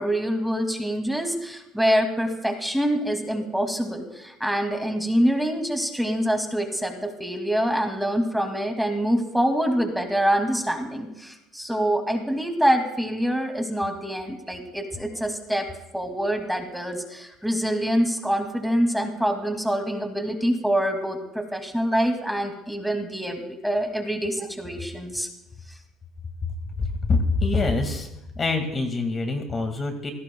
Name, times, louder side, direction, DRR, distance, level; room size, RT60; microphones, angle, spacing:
voice 1, 0.0-15.7 15.9-25.3, equal, ahead, 3 dB, 2.4 m, -25 dB
voice 2, 26.8-28.1 28.4-30.1, left 3 dB, 25° left, 5 dB, 2.1 m, -25 dB
26.5 x 17.5 x 2.3 m, 0.89 s
cardioid pair, 115°, 0 cm